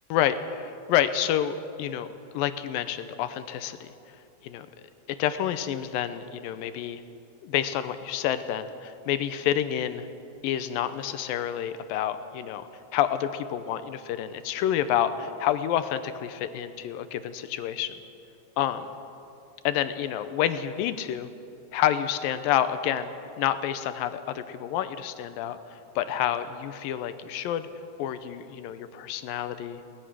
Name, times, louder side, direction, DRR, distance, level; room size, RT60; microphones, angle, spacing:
voice 1, 0.1-3.9 4.4-4.7 5.1-7.0 7.4-10.1 10.4-18.0 18.6-18.9 19.6-21.3 21.7-27.7 28.0-29.8, left 10 dB, 80° left, 11 dB, 2.3 m, -28 dB
23.0 x 19.0 x 6.2 m, 2.6 s
omnidirectional pair, 4.4 m